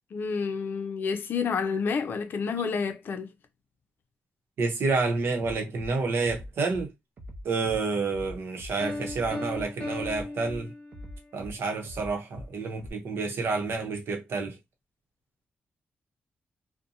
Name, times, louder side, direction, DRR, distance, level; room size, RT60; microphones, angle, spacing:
voice 1, 0.1-3.3, left 5 dB, 60° left, 0.5 m, -29 dB
voice 2, 4.6-6.9 7.4-10.7 11.3-14.6, right 4 dB, 80° right, 0.8 m, -29 dB
Bass drum, 5.4-5.9 6.2-6.8 7.2-7.8 8.1-8.7 9.0-9.6 10.0-10.6 10.9-11.5 11.9-12.5 12.8-12.9, left 1 dB, 50° right, 0.6 m, -42 dB
Piano, 8.8-11.3, left 2 dB, 30° left, 1.0 m, -36 dB
2.6 x 2.2 x 2.7 m
wide cardioid pair, 135°, 4 cm